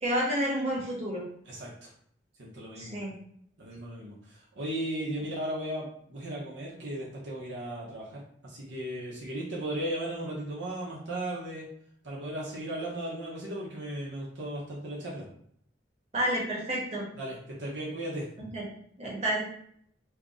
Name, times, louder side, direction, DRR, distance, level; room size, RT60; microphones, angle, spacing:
voice 1, 0.0-1.2 2.8-3.1 16.1-17.0 18.5-18.6 19.0-19.4, right 1 dB, 35° right, -5 dB, 1.3 m, -29 dB
voice 2, 1.5-1.9 2.4-3.0 3.6-11.7 12.0-15.2 17.1-18.3, right 1 dB, 80° right, -5 dB, 0.9 m, -36 dB
2.8 x 2.6 x 3.6 m, 0.66 s
head